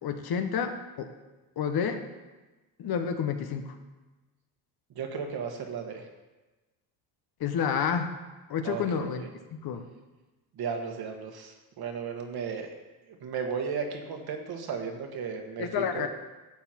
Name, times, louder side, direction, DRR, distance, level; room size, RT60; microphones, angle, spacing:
voice 1, 0.0-1.1 1.6-2.0 2.8-3.7 7.4-8.1 8.5-9.2 9.6-9.8 15.6-16.1, left 7 dB, 50° left, 7 dB, 1.2 m, -29 dB
voice 2, 4.9-6.0 8.6-9.3 10.5-12.7 13.1-16.1, right 6 dB, 50° right, 3 dB, 1.7 m, -35 dB
11.5 x 7.2 x 4.5 m, 1.2 s
supercardioid pair, 90°, 47 cm